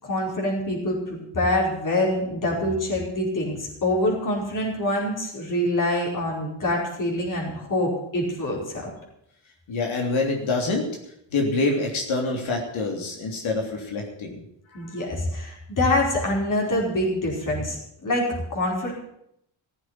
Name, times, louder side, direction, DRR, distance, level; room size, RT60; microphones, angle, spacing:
voice 1, 0.0-8.9 14.7-18.9, left 1 dB, 40° left, -2 dB, 4.9 m, -25 dB
voice 2, 9.7-10.9 11.3-14.3 14.7-15.0, left 3 dB, 80° left, 1 dB, 3.3 m, -26 dB
15.0 x 8.0 x 9.0 m, 0.76 s
cardioid pair, 120°, 47 cm